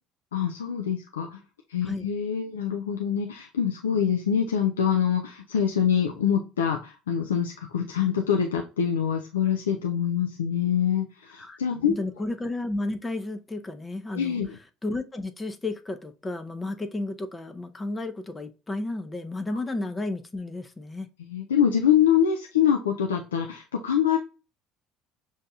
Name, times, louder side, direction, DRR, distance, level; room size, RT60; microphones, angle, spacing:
voice 1, 0.3-1.4 1.7-11.9 14.1-14.6 21.3-24.2, left 8 dB, 85° left, 0.4 m, -25 dB
voice 2, 11.9-14.4 14.8-21.1, left 2 dB, 20° left, 0.5 m, -32 dB
6.4 x 2.7 x 2.3 m
hypercardioid pair, 65°, 0 cm